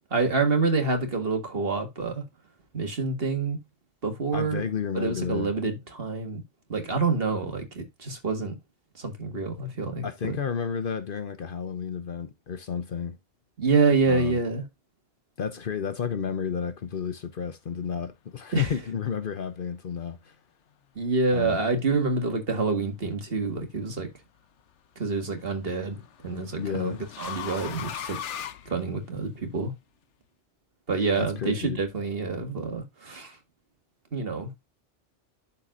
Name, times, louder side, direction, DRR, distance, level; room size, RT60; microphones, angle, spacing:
voice 1, 0.1-2.2 2.7-3.6 4.0-4.6 4.9-6.4 6.7-8.6 8.9-10.4 13.6-14.6 18.5-18.7 21.0-24.1 25.0-28.2 28.7-29.7 30.9-33.4 34.1-34.5, right 4 dB, 55° right, 2.0 m, -27 dB
voice 2, 4.3-5.5 10.0-13.2 14.1-14.4 15.4-20.3 21.3-21.6 26.5-27.0 31.2-31.8, left 7 dB, 55° left, 0.9 m, -31 dB
sound 1, 23.5-24.0 25.4-29.4, left 9 dB, 80° left, 1.0 m, -39 dB
12.5 x 4.3 x 2.4 m
omnidirectional pair, 1.2 m